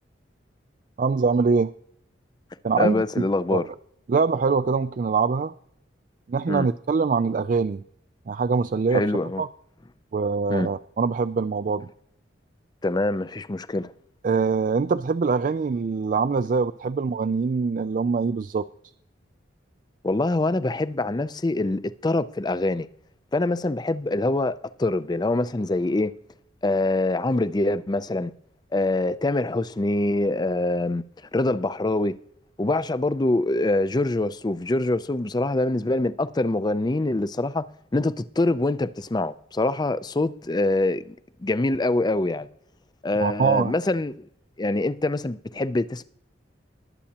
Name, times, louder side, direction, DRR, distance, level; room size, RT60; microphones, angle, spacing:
voice 1, 1.0-1.7 2.6-3.2 3.5-3.6 4.1-5.5 6.3-7.8 8.3-9.1 9.4-9.5 10.1-11.9 14.2-18.6 43.2-43.7, right 5 dB, 45° right, 0.3 m, -23 dB
voice 2, 2.8-3.6 6.5-6.7 8.9-9.4 10.5-10.7 12.8-13.9 20.0-22.9 23.3-26.1 26.6-28.3 28.7-31.0 31.3-32.2 32.6-37.6 37.9-42.5 43.0-44.1 44.6-46.0, left 2 dB, 20° left, 0.4 m, -24 dB
20.0 x 8.4 x 2.9 m
head